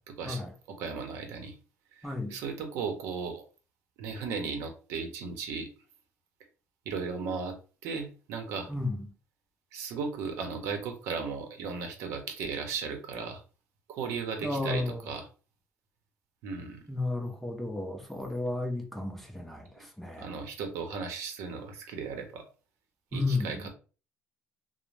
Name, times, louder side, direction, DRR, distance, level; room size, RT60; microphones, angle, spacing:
voice 1, 0.1-0.4 0.7-1.5 2.0-3.4 4.0-5.7 6.9-7.6 7.8-8.7 9.7-13.4 13.9-15.3 16.4-16.8 20.2-22.4 23.1-23.7, right 5 dB, 70° right, 0.7 m, -36 dB
voice 2, 2.0-2.3 8.7-9.0 14.4-15.0 16.9-20.3 23.1-23.6, left 2 dB, 5° left, 0.5 m, -33 dB
2.5 x 2.0 x 3.1 m
cardioid pair, 135°, 5 cm